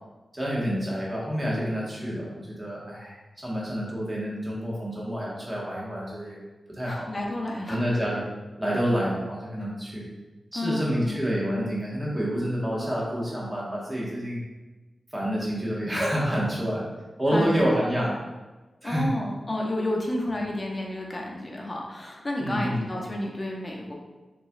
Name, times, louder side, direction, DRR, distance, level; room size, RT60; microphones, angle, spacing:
voice 1, 0.4-3.2 3.4-6.4 6.7-7.1 7.7-8.2 8.6-10.0 10.5-14.4 15.1-16.9 17.2-18.1 18.8-19.1 22.4-22.8, equal, 20° right, -5 dB, 1.5 m, -28 dB
voice 2, 6.8-7.8 10.5-11.2 17.3-17.7 18.8-23.9, left 1 dB, 35° left, -1 dB, 0.8 m, -31 dB
5.6 x 3.1 x 2.5 m, 1.2 s
wide cardioid pair, 75°, 0 cm